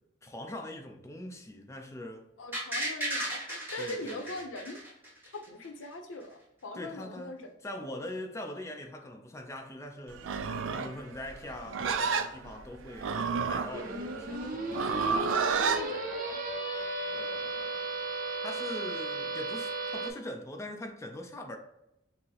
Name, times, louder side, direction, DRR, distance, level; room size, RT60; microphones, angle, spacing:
voice 1, 0.2-2.3 3.8-4.4 6.7-10.4 10.7-15.9 17.1-17.8 18.4-21.6, left 1 dB, 15° left, 0.5 m, -42 dB
voice 2, 2.4-3.4 3.7-4.8 5.3-7.5 7.8-7.9 15.4-16.4, left 2 dB, 90° left, 0.6 m, -41 dB
sound 1, 2.5-5.5 5.8-5.9, right 1 dB, 10° right, 1.3 m, -35 dB
Livestock farm animals working animals, 10.2-15.8, right 5 dB, 85° right, 0.4 m, -31 dB
sound 2, 13.7-20.1, right 2 dB, 45° right, 0.6 m, -35 dB
5.9 x 2.0 x 2.8 m
head